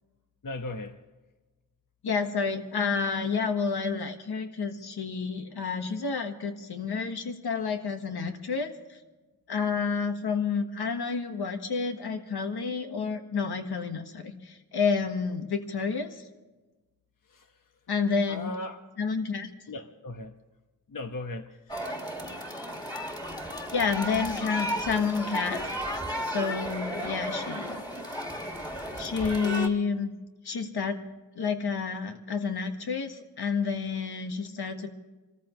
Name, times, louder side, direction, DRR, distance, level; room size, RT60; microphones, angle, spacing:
voice 1, 0.4-1.0 17.2-17.8 18.3-18.8 19.7-20.4 20.9-22.3, left 2 dB, 60° left, 5 dB, 1.2 m, -39 dB
voice 2, 2.0-9.0 9.5-16.2 17.9-18.5 19.0-19.5 23.7-25.8 26.2-27.8 29.0-30.1 30.4-31.0 31.4-34.9, left 5 dB, 85° left, 5 dB, 1.6 m, -30 dB
sound 1, 21.7-29.7, equal, 10° left, 2.1 m, -34 dB
26.5 x 14.0 x 3.2 m, 1.2 s
wide cardioid pair, 80°, 37 cm